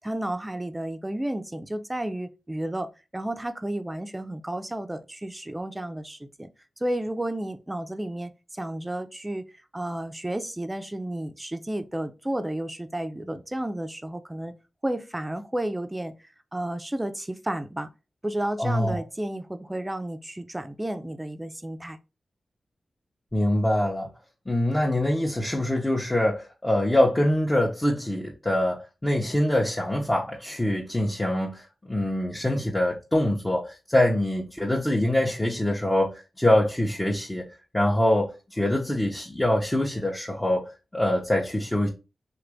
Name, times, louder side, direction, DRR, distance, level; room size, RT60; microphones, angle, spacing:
voice 1, 0.0-6.5 6.8-9.4 9.7-14.5 14.8-16.1 16.5-17.9 18.2-22.0, right 1 dB, 15° right, 0.5 m, -32 dB
voice 2, 18.6-19.0 23.3-24.1 24.5-37.4 37.7-40.6 40.9-41.9, left 1 dB, 20° left, 0.7 m, -24 dB
3.0 x 2.5 x 3.3 m
supercardioid pair, 40°, 0 cm